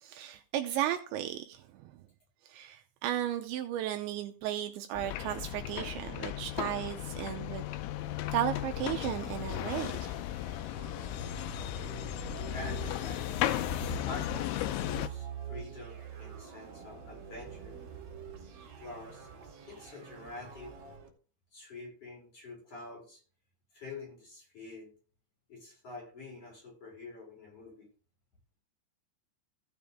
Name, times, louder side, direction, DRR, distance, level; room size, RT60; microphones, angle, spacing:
voice 1, 0.0-1.8 2.5-7.6 8.3-10.2 11.7-11.9, right 12 dB, 80° right, 2.9 m, -35 dB
sound 1, 4.9-15.1, left 13 dB, 85° left, 2.8 m, -35 dB
sound 2, 10.1-21.1, right 8 dB, 55° right, 3.5 m, -46 dB
voice 2, 12.5-13.3 14.1-17.7 18.8-19.3 19.7-20.8 21.5-23.2 23.7-24.9 25.5-27.9, left 3 dB, 30° left, 7.0 m, -47 dB
15.0 x 7.0 x 3.5 m
omnidirectional pair, 5.5 m